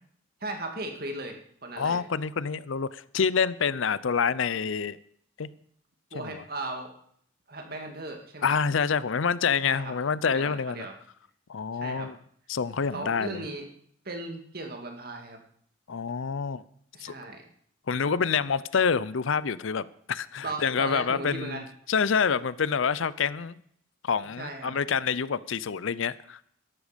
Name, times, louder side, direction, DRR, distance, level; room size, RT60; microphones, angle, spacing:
voice 1, 0.4-1.4 1.6-2.0 6.1-6.9 7.5-8.6 9.7-9.9 10.3-10.9 11.7-12.1 12.9-13.6 14.0-15.4 16.9-17.4 20.4-21.7 24.4-24.7, right 2 dB, 45° right, 2.2 m, -37 dB
voice 2, 1.8-5.0 5.4-5.5 6.1-6.4 8.4-10.9 11.5-12.2 12.5-13.4 15.9-16.6 17.0-17.1 17.9-21.6 21.9-23.6 24.0-26.4, left 6 dB, 70° left, 0.5 m, -27 dB
13.5 x 11.5 x 5.1 m
head